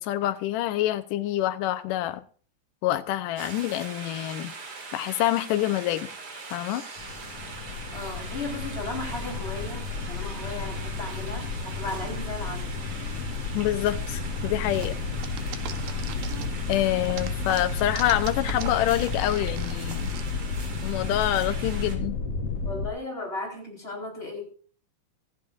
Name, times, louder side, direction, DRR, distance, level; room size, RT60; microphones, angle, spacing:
voice 1, 0.0-2.2 2.8-4.5 4.9-6.1 6.5-6.8 13.5-15.0 16.7-20.1 20.8-22.2, left 14 dB, 75° left, 11 dB, 2.3 m, -26 dB
sound 1, 3.4-22.0, right 4 dB, 40° right, 2.9 m, -41 dB
sound 2, 7.0-22.9, left 4 dB, 55° left, 1.9 m, -32 dB
voice 2, 7.9-9.8 10.1-12.6 22.6-24.5, left 2 dB, 15° left, 0 dB, 4.7 m, -35 dB
sound 3, 14.8-16.7 17.1-20.2, right 10 dB, 75° right, 2.8 m, -39 dB
25.0 x 9.0 x 2.6 m, 0.42 s
omnidirectional pair, 4.1 m